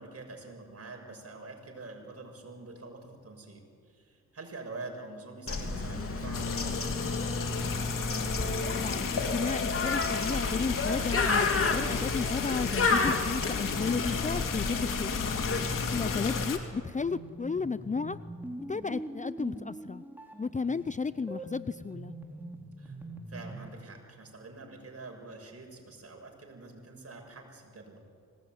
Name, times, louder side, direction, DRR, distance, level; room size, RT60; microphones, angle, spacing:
voice 1, 0.0-7.2 22.8-23.0 23.3-28.1, right 3 dB, 45° right, 3 dB, 6.8 m, -46 dB
Bird, 5.5-16.5, left 3 dB, 40° left, 3.1 m, -31 dB
sound 1, 6.3-16.6, left 7 dB, 75° left, 2.7 m, -35 dB
voice 2, 8.7-15.3 15.9-18.2 18.7-20.0 20.4-22.1, left 4 dB, 25° left, 16 dB, 0.6 m, -33 dB
sound 2, 16.9-23.8, right 2 dB, 5° right, 3.8 m, -43 dB
25.5 x 19.5 x 9.4 m, 2.2 s
cardioid pair, 60°, 33 cm